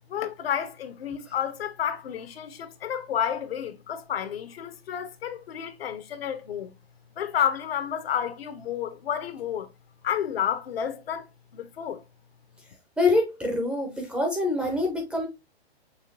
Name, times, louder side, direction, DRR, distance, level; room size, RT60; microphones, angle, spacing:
voice 1, 0.1-6.7 7.2-9.7 10.0-11.3 11.5-12.0, left 9 dB, 65° left, 0.9 m, -30 dB
voice 2, 13.0-15.3, left 2 dB, 5° right, 0.5 m, -25 dB
5.8 x 2.9 x 2.7 m
hypercardioid pair, 145°, 32 cm